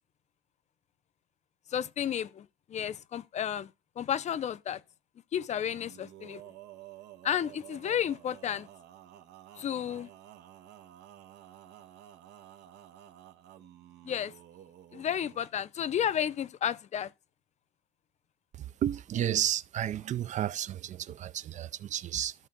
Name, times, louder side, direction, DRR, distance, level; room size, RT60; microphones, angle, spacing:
voice 1, 1.7-2.5 2.7-3.7 4.0-4.8 5.3-6.4 7.2-8.7 9.6-10.1 14.0-14.3 14.9-17.1, left 9 dB, 45° left, 0.5 m, -32 dB
Male singing, 5.6-15.5, right 12 dB, 85° right, 1.1 m, -52 dB
voice 2, 18.6-22.3, right 11 dB, 45° right, 0.4 m, -32 dB
13.0 x 4.4 x 3.8 m
cardioid pair, 110°, 17 cm